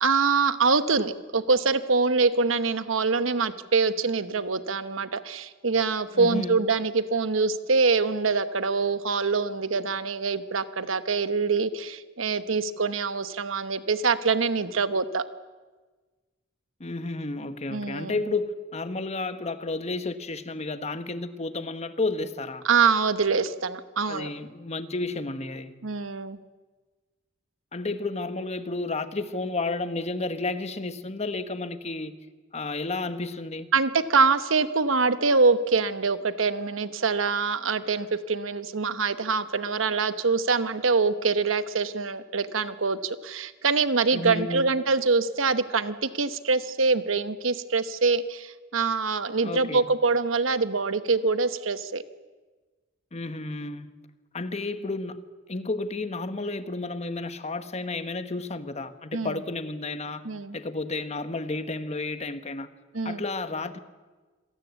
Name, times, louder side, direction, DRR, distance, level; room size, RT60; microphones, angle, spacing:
voice 1, 0.0-15.2 17.7-18.2 22.6-24.3 25.8-26.4 33.7-52.0 59.1-59.3 60.2-60.6 62.9-63.2, right 4 dB, 85° right, 1.1 m, -24 dB
voice 2, 6.1-6.6 16.8-22.6 24.1-25.8 27.7-32.2 32.5-33.7 44.1-44.7 49.4-49.9 53.1-53.9 54.3-55.2 55.5-60.3 60.5-62.7 63.0-63.8, left 3 dB, 35° left, 1.2 m, -32 dB
26.0 x 17.5 x 8.2 m
head